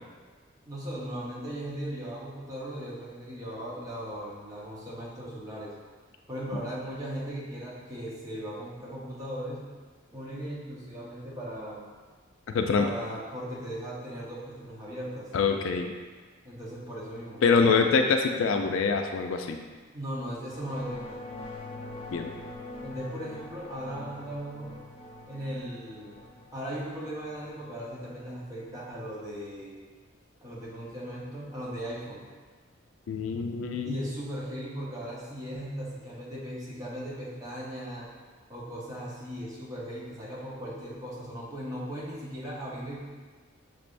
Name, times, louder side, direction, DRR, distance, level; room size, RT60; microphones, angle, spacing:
voice 1, 0.7-5.7 6.3-9.6 10.1-11.9 12.8-15.3 16.4-17.9 19.9-21.2 22.8-24.7 25.3-26.2 26.5-29.8 30.4-32.2 33.8-38.1 38.5-43.0, equal, 20° right, -6 dB, 0.9 m, -38 dB
voice 2, 12.5-12.9 15.3-15.9 17.4-19.6 22.1-22.3 33.1-34.0, left 5 dB, 75° left, 4 dB, 0.4 m, -25 dB
sound 1, 20.4-29.1, left 2 dB, 30° left, 0.6 m, -44 dB
6.0 x 3.3 x 2.5 m, 1.4 s
head